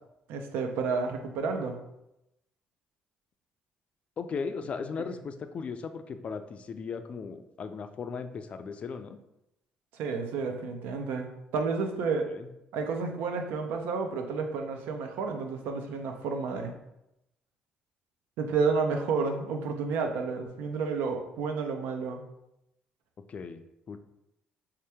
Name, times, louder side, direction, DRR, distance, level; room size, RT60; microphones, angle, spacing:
voice 1, 0.3-1.7 10.0-12.3 12.7-16.7 18.4-22.2, right 4 dB, 85° right, 4 dB, 0.6 m, -31 dB
voice 2, 4.2-9.2 12.3-12.5 23.3-23.6 23.9-24.0, left 5 dB, 40° left, 9 dB, 0.3 m, -37 dB
3.4 x 2.8 x 3.4 m, 0.86 s
cardioid pair, 115°, 3 cm